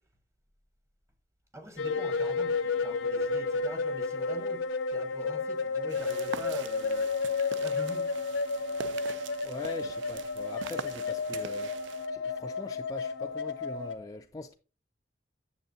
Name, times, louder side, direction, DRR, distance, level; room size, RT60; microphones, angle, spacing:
voice 1, 1.5-7.1 7.6-8.1, right 1 dB, 15° right, 1.0 m, -44 dB
sound 1, 1.8-13.9, left 4 dB, 80° left, 0.6 m, -32 dB
sound 2, 5.9-12.1, right 7 dB, 65° right, 0.4 m, -44 dB
voice 2, 9.4-11.7 12.1-14.6, left 2 dB, 20° left, 0.3 m, -42 dB
9.0 x 7.1 x 2.7 m
head